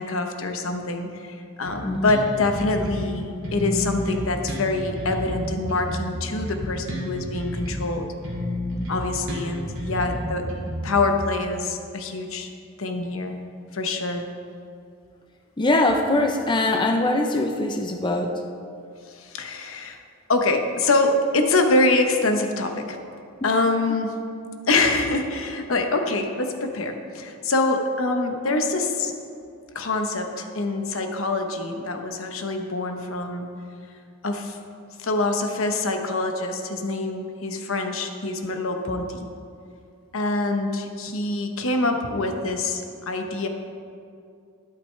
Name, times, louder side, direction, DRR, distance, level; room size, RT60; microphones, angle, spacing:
voice 1, 0.0-8.1 8.9-10.5 10.8-12.5 12.8-13.4 13.7-14.2 19.1-20.0 20.3-23.0 23.4-24.2 24.7-29.2 29.7-33.5 34.2-34.6 35.0-39.3 40.1-43.5, left 2 dB, 80° left, 5 dB, 0.9 m, -25 dB
Bass guitar, 1.6-3.1 3.4-7.9 8.2-11.2, left 1 dB, 65° right, 2.3 m, -31 dB
voice 2, 1.8-2.2 15.6-18.4 23.4-23.5, left 2 dB, 20° left, 3 dB, 0.6 m, -22 dB
11.5 x 11.5 x 3.3 m, 2.4 s
head